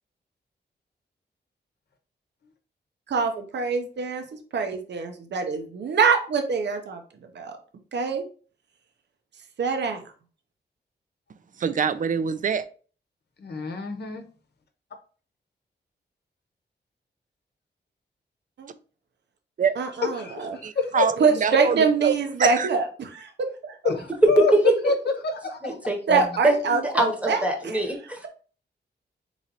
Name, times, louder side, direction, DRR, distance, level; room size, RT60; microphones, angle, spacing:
voice 1, 3.1-4.2 4.5-7.0 7.3-7.6 7.9-8.2 9.6-10.0 18.6-18.7 19.8-20.6 21.2-23.3 23.7-23.8 26.1-27.8, right 5 dB, 75° right, 0.8 m, -24 dB
voice 2, 11.6-12.7 19.6-19.7 20.6-22.1 22.4-22.7, right 7 dB, 45° right, 0.4 m, -25 dB
voice 3, 13.4-14.2 20.2-20.5 20.8-21.1 23.8-24.5 24.8-24.9 25.3-25.6, left 4 dB, 65° left, 0.9 m, -27 dB
voice 4, 25.6-28.3, right 1 dB, 5° right, 1.0 m, -23 dB
3.9 x 3.1 x 4.0 m
wide cardioid pair, 120°, 18 cm